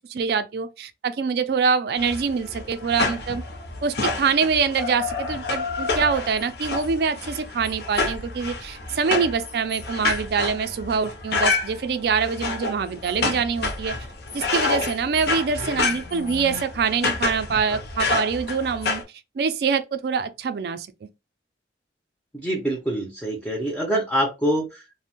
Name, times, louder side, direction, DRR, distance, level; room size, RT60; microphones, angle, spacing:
voice 1, 0.1-3.4 3.8-13.9 14.3-19.0 19.4-21.1, right 5 dB, 55° right, 0.3 m, -25 dB
sound 1, 2.0-19.0, left 3 dB, 60° left, 0.6 m, -28 dB
voice 2, 22.4-24.9, right 1 dB, 5° left, 0.4 m, -25 dB
2.5 x 2.0 x 2.8 m
head